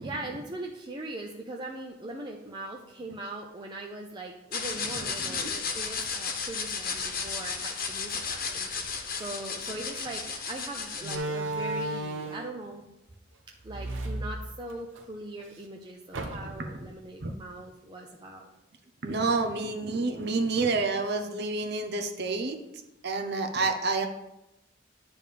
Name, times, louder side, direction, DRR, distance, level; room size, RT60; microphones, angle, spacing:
voice 1, 0.0-12.8 13.6-18.4, right 2 dB, 25° right, -1 dB, 0.7 m, -40 dB
sound 1, 4.5-11.1, left 5 dB, 50° left, 1.2 m, -34 dB
Slam, 9.9-10.1 11.0-12.6 13.6-15.0 15.4-15.5 16.1-16.8, right 2 dB, 85° right, 0.9 m, -34 dB
voice 2, 19.0-22.6 23.0-24.1, right 3 dB, 60° right, 5 dB, 0.8 m, -28 dB
10.5 x 3.5 x 6.6 m, 0.92 s
head